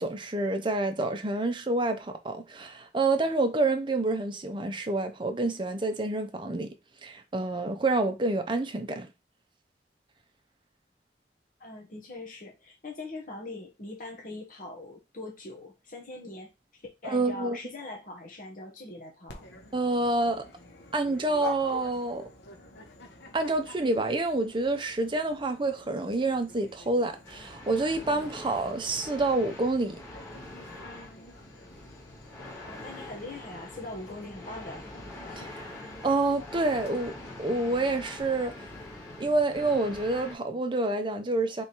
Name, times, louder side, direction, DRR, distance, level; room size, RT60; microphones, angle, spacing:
voice 1, 0.0-6.7 7.0-9.1 17.0-17.6 19.7-20.4 20.9-22.3 23.3-30.0 35.4-35.7 36.0-38.6 39.2-41.6, right 2 dB, 25° right, 0.6 m, -28 dB
voice 2, 11.6-16.5 17.0-19.5 32.6-34.8, left 2 dB, 45° left, 1.2 m, -42 dB
Dog, 19.3-38.2, left 3 dB, 65° left, 1.1 m, -49 dB
sound 1, 27.2-40.4, left 2 dB, 15° left, 1.7 m, -44 dB
3.5 x 3.2 x 4.2 m
head